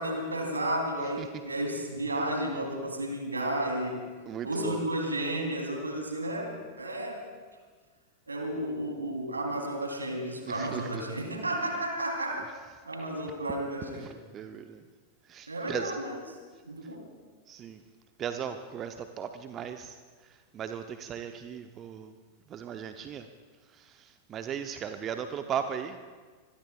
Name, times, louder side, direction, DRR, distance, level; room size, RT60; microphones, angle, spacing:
voice 1, 0.0-4.0 4.4-7.2 8.3-12.5 12.8-14.1 15.5-16.2 16.7-17.0, right 1 dB, 80° right, 1 dB, 3.5 m, -32 dB
voice 2, 4.3-4.8 10.4-11.0 13.9-14.8 15.3-16.0 17.5-17.8 18.2-20.0 20.5-22.1 22.5-23.2 23.8-26.0, right 8 dB, 30° right, 8 dB, 0.8 m, -37 dB
26.0 x 21.5 x 2.4 m, 1.5 s
figure-of-eight pair, 90°, 0 cm